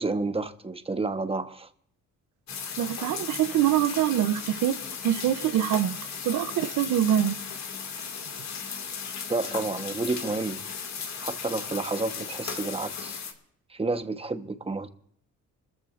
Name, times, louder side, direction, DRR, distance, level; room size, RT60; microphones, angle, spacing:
voice 1, 0.0-1.7 9.3-10.6 11.2-13.2 13.7-14.9, right 3 dB, 20° right, 1.2 m, -30 dB
sound 1, 2.5-13.3, left 6 dB, 65° left, 2.3 m, -36 dB
voice 2, 2.8-4.8 5.0-6.0 6.2-7.4, right 11 dB, 80° right, 0.8 m, -24 dB
28.5 x 14.5 x 2.6 m
cardioid pair, 90°, 30 cm